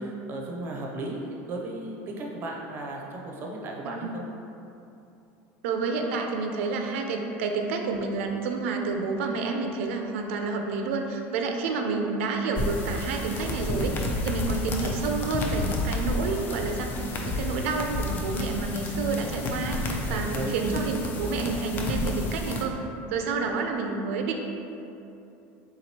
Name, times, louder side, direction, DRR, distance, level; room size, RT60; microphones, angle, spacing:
voice 1, 0.0-4.2 20.1-20.8, right 2 dB, 30° right, -1 dB, 0.6 m, -35 dB
voice 2, 5.6-16.9 17.2-22.8 23.1-24.4, right 4 dB, 80° right, 3 dB, 0.5 m, -29 dB
sound 1, 12.6-22.6, left 2 dB, 30° left, 0.5 m, -31 dB
3.7 x 3.0 x 4.2 m, 2.8 s
supercardioid pair, 150°, 7 cm